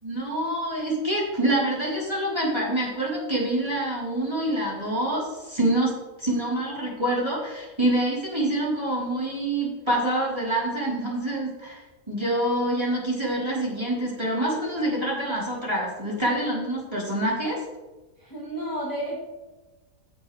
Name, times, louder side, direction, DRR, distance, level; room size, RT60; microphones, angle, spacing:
voice 1, 0.0-5.9 6.2-11.8 12.1-17.6, right 1 dB, 15° right, -7 dB, 4.1 m, -26 dB
voice 2, 18.2-19.2, right 1 dB, 15° left, -3 dB, 1.6 m, -31 dB
15.5 x 7.3 x 3.4 m, 1.2 s
omnidirectional pair, 1.7 m